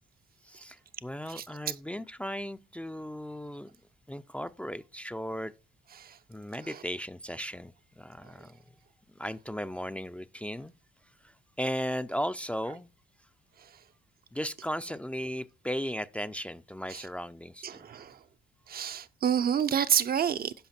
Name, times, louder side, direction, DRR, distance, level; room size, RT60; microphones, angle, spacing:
voice 1, 0.4-3.7 4.1-5.5 6.3-8.6 9.2-10.7 11.2-12.9 14.3-17.8, equal, 5° left, 0.5 m, -36 dB
voice 2, 1.4-1.7 6.0-6.1 16.9-17.0 17.6-18.2 18.7-20.5, right 8 dB, 50° right, 0.6 m, -29 dB
12.0 x 5.0 x 4.3 m
cardioid pair, 90°, 20 cm